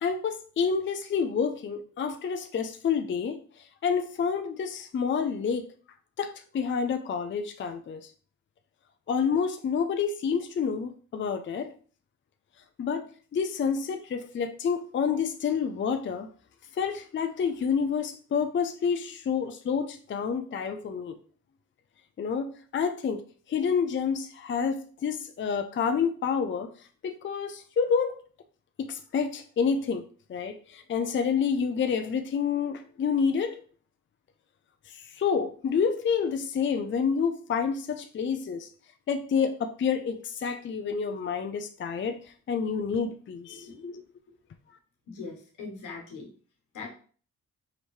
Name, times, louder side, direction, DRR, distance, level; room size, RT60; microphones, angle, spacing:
voice 1, 0.0-3.4 3.8-5.7 6.2-8.1 9.1-11.7 12.8-13.0 13.3-16.3 16.8-21.2 22.2-23.2 23.5-26.7 27.0-28.2 28.8-33.6 34.9-38.7 39.1-42.2 42.5-44.0, left 6 dB, 40° left, 7 dB, 0.5 m, -28 dB
voice 2, 43.5-44.0 45.1-46.3 46.7-46.9, left 4 dB, 85° left, 1 dB, 1.2 m, -41 dB
5.0 x 2.7 x 3.1 m, 0.42 s
cardioid pair, 60°, 31 cm